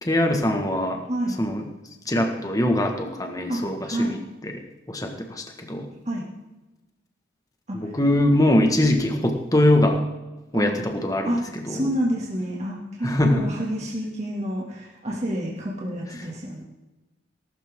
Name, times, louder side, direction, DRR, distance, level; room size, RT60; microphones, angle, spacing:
voice 1, 0.0-1.0 1.4-1.7 2.1-4.6 4.9-5.9 7.7-10.0 10.5-11.3 11.7-11.8 13.0-13.5, left 1 dB, 20° left, 4 dB, 1.6 m, -22 dB
voice 2, 3.5-4.1 6.0-6.2 7.7-7.9 10.5-10.8 11.2-16.6, equal, 35° right, -3 dB, 2.4 m, -28 dB
19.0 x 12.5 x 3.7 m, 1.0 s
head